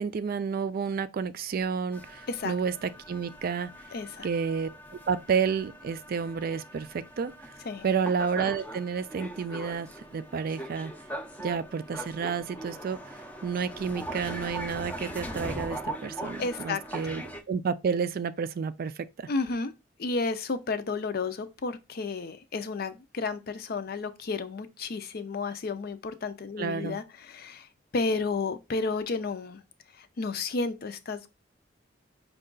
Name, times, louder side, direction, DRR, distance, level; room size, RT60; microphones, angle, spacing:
voice 1, 0.0-3.7 4.2-4.7 5.1-7.3 7.8-10.9 11.4-13.0 13.4-19.1 26.6-27.0, right 6 dB, 50° right, 0.4 m, -30 dB
sound 1, 1.9-17.4, right 1 dB, 10° left, 0.5 m, -41 dB
voice 2, 3.9-4.3 7.7-7.8 16.4-17.1 19.3-19.7 20.0-27.7 27.9-29.6 30.0-31.3, left 3 dB, 55° left, 0.5 m, -32 dB
5.4 x 2.4 x 3.8 m
head